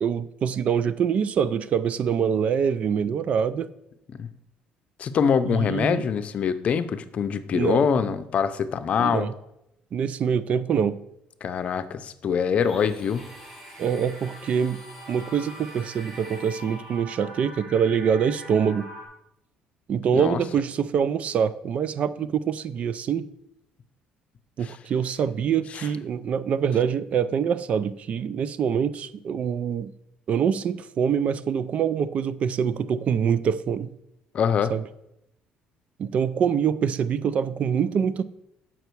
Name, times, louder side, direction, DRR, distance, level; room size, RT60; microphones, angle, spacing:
voice 1, 0.0-3.7 5.4-6.1 7.5-7.9 9.0-9.3 9.9-11.0 13.8-14.8 15.1-18.9 19.9-23.3 24.6-29.9 30.3-33.9 34.7-34.8 36.0-38.2, right 7 dB, 50° right, 0.4 m, -25 dB
voice 2, 5.0-9.3 11.4-13.2 20.1-20.4 25.8-25.9 34.3-34.7, left 7 dB, 50° left, 0.6 m, -24 dB
Domestic sounds home sounds, 12.6-17.0, equal, 5° right, 3.4 m, -48 dB
sound 1, 13.1-19.1, right 1 dB, 85° right, 2.6 m, -43 dB
7.9 x 5.9 x 4.6 m
cardioid pair, 105°, 3 cm